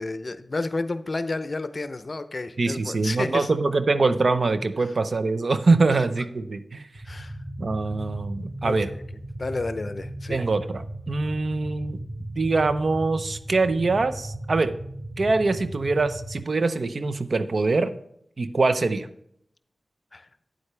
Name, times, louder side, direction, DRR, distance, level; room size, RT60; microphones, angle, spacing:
voice 1, 0.0-3.5 7.1-7.3 8.6-9.0 9.4-10.5 20.1-20.3, left 3 dB, 50° left, 11 dB, 0.7 m, -31 dB
voice 2, 2.6-6.9 7.6-8.9 10.3-12.0 12.3-14.7 15.2-17.9 18.4-19.1, right 3 dB, 65° right, 11 dB, 0.7 m, -23 dB
sound 1, 6.9-16.4, right 1 dB, 20° right, 4.2 m, -37 dB
9.4 x 8.1 x 3.4 m, 0.70 s
wide cardioid pair, 60°, 0 cm